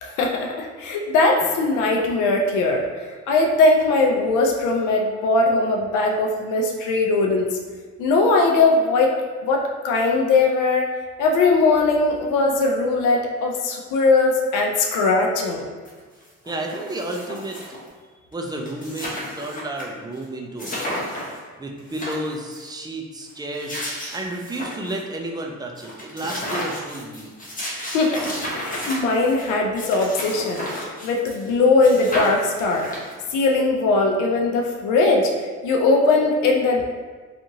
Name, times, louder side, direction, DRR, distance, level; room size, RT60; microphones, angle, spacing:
voice 1, 0.0-2.9 3.3-7.6 8.0-9.2 9.4-10.9 11.2-15.7 27.9-32.9 33.3-36.8, left 3 dB, 85° left, 0 dB, 0.5 m, -20 dB
sound 1, 15.8-15.9 16.2-17.9 18.3-18.4 18.6-19.8 20.2-20.3 20.6-21.4 21.8-22.7 23.4-25.0 25.4-25.5 25.8-31.5 31.8-33.3, equal, 25° left, 0.7 m, -32 dB
voice 2, 16.5-17.6 18.3-21.1 21.6-23.8 24.1-27.3, right 1 dB, 15° right, 1 dB, 0.3 m, -31 dB
2.8 x 2.4 x 2.6 m, 1.4 s
cardioid pair, 90°, 30 cm